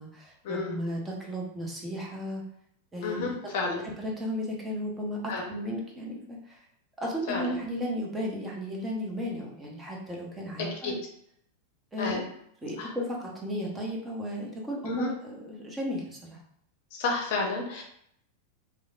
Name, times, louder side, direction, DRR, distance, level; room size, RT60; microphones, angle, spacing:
voice 1, 0.0-2.4 2.9-3.3 3.8-6.6 7.0-11.0 11.9-12.3 12.6-16.4, equal, 10° right, -2 dB, 0.7 m, -34 dB
voice 2, 3.0-3.8 5.3-5.4 7.3-7.5 10.6-11.0 12.0-12.2 12.8-12.9 14.9-15.1 16.9-17.8, left 3 dB, 50° left, 1 dB, 0.6 m, -31 dB
3.2 x 2.4 x 2.3 m, 0.71 s
figure-of-eight pair, 90°, 0 cm